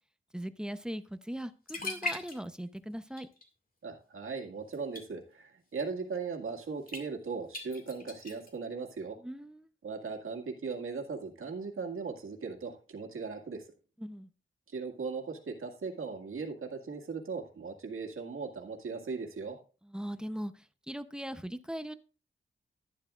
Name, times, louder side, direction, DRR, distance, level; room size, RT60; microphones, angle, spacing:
voice 1, 0.3-3.3 9.2-9.7 14.0-14.3 19.8-20.5 20.9-22.0, equal, 5° right, 10 dB, 0.7 m, -39 dB
sound 1, 1.4-1.5 1.7-2.8 3.1-3.5 4.7-5.0 6.9-7.0 7.5-8.5, left 2 dB, 40° left, 2.1 m, -38 dB
voice 2, 3.8-9.2 9.8-13.6 14.7-19.6, right 4 dB, 80° right, 2 dB, 1.9 m, -38 dB
11.5 x 11.5 x 2.4 m, 0.35 s
wide cardioid pair, 115°, 21 cm